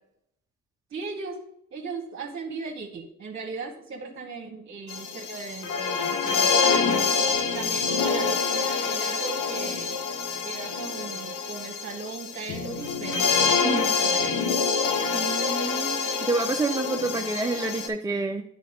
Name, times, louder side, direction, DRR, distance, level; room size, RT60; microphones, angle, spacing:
voice 1, 0.9-1.4 1.7-7.2 7.5-9.9 10.4-14.6, right 4 dB, 40° right, 3 dB, 1.0 m, -37 dB
sound 1, 4.9-17.9, left 5 dB, 85° left, 0.9 m, -26 dB
voice 2, 15.1-18.4, right 3 dB, 10° right, 4 dB, 0.4 m, -28 dB
8.4 x 3.8 x 5.0 m, 0.79 s
cardioid pair, 90°, 30 cm